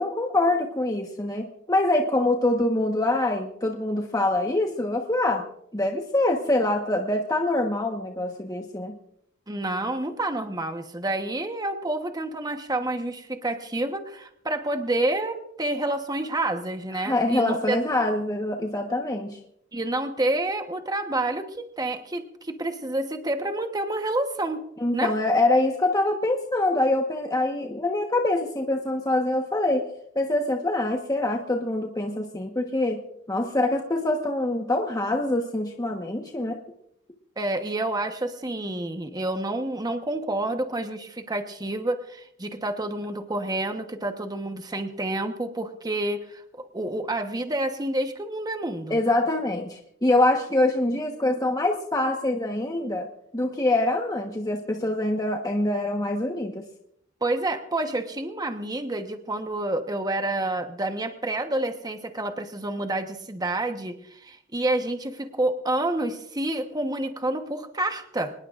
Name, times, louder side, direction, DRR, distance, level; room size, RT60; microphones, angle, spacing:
voice 1, 0.0-5.4 5.7-8.9 16.9-19.4 24.8-29.8 30.1-33.0 33.3-36.6 48.9-53.1 53.3-56.6, left 2 dB, 20° left, 2 dB, 1.2 m, -24 dB
voice 2, 9.5-17.8 19.7-24.6 24.9-25.1 37.4-46.4 46.7-49.0 57.2-68.3, right 2 dB, 20° right, 6 dB, 1.1 m, -28 dB
25.0 x 20.0 x 2.5 m, 0.72 s
head